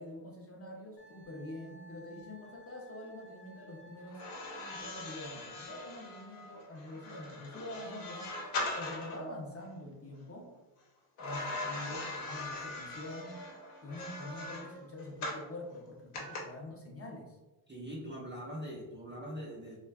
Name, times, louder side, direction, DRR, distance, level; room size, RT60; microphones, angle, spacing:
voice 1, 0.0-4.3 4.7-8.3 8.7-10.5 11.2-13.4 13.8-17.4, left 1 dB, 30° left, -1 dB, 0.5 m, -45 dB
Wind instrument woodwind instrument, 1.0-5.4, equal, 50° left, 1.0 m, -57 dB
sound 1, 4.1-9.3 11.2-15.5 16.1-16.4, left 2 dB, 80° left, 0.8 m, -41 dB
voice 2, 17.7-19.8, equal, 25° right, -4 dB, 0.4 m, -42 dB
2.5 x 2.2 x 2.3 m, 1.1 s
cardioid pair, 85°, 50 cm